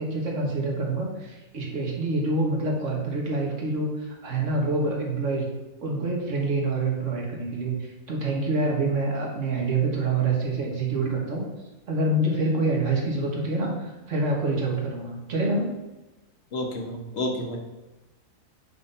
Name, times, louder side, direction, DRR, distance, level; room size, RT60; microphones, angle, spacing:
voice 1, 0.0-5.5 5.8-11.4 11.9-15.7, right 2 dB, 65° right, -1 dB, 1.6 m, -26 dB
voice 2, 16.5-17.6, left 1 dB, 55° left, 2 dB, 1.1 m, -30 dB
5.6 x 3.8 x 5.4 m, 1.1 s
omnidirectional pair, 1.4 m